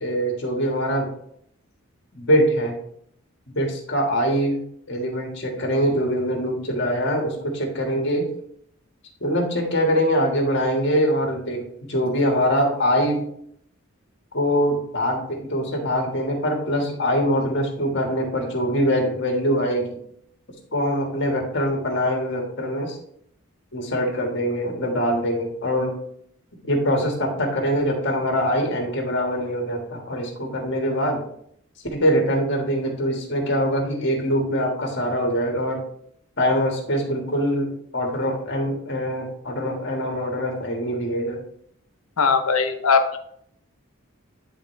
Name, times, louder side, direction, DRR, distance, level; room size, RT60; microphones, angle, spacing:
voice 1, 0.0-1.1 2.1-2.8 3.5-4.6 4.9-8.3 9.2-13.2 14.3-19.9 20.7-23.0 23.7-25.9 26.6-31.2 31.9-35.8 36.4-41.4, equal, 55° left, 1 dB, 1.6 m, -23 dB
voice 2, 42.2-43.2, left 5 dB, 80° left, 7 dB, 0.8 m, -19 dB
10.0 x 3.7 x 3.2 m, 0.69 s
head